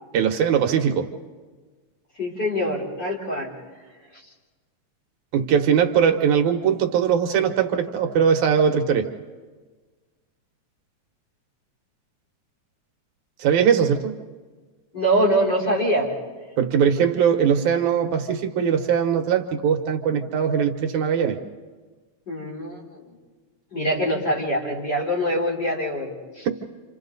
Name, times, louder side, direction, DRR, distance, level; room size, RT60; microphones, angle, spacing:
voice 1, 0.1-1.1 5.3-9.1 13.4-14.1 16.6-21.4, right 7 dB, 80° right, 5 dB, 2.5 m, -20 dB
voice 2, 2.2-3.5 14.9-16.1 22.3-22.8 23.7-26.5, equal, 35° left, -3 dB, 4.6 m, -24 dB
30.0 x 27.0 x 4.0 m, 1.4 s
omnidirectional pair, 3.4 m